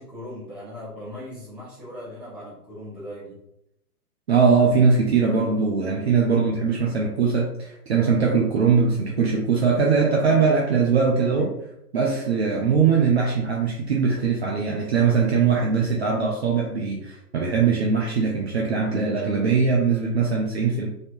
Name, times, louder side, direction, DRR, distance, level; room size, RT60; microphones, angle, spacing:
voice 1, 0.0-3.4, left 1 dB, ahead, -11 dB, 0.8 m, -38 dB
voice 2, 4.3-11.5 11.9-20.9, right 5 dB, 45° right, -1 dB, 0.5 m, -21 dB
3.1 x 2.8 x 2.6 m, 0.81 s
figure-of-eight pair, 120°, 47 cm